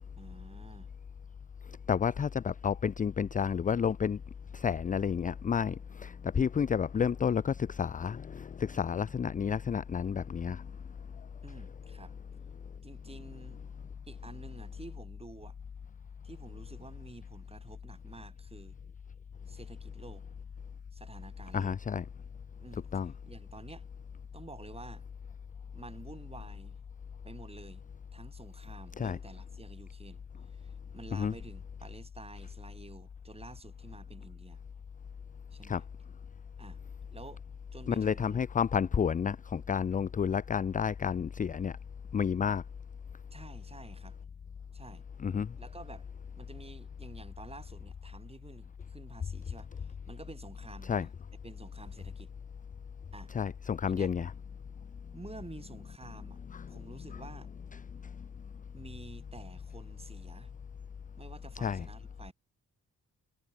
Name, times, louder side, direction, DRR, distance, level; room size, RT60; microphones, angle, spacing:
voice 1, 0.2-0.9 11.4-12.2 12.8-13.6 14.0-15.6 16.2-18.8 19.5-20.2 20.9-21.8 22.6-22.9 23.3-23.8 24.3-25.1 25.7-26.8 27.2-34.6 35.5-35.8 36.6-36.8 37.1-37.4 37.7-38.4 43.3-44.2 44.7-45.0 45.6-46.1 46.4-51.1 51.4-52.3 53.1-53.3 53.9-54.1 55.1-56.4 56.7-57.5 58.7-60.5 61.2-62.3, right 3 dB, 20° right, 5.8 m, -50 dB
voice 2, 1.7-4.2 4.5-10.7 21.5-22.0 22.9-23.1 29.0-29.2 31.1-31.3 35.6-35.8 37.9-41.8 42.1-42.6 45.2-45.6 50.8-51.1 53.3-54.3 56.5-56.8 57.9-58.2 61.6-61.9, left 7 dB, 25° left, 0.4 m, -31 dB
wide cardioid pair, 155°, 32 cm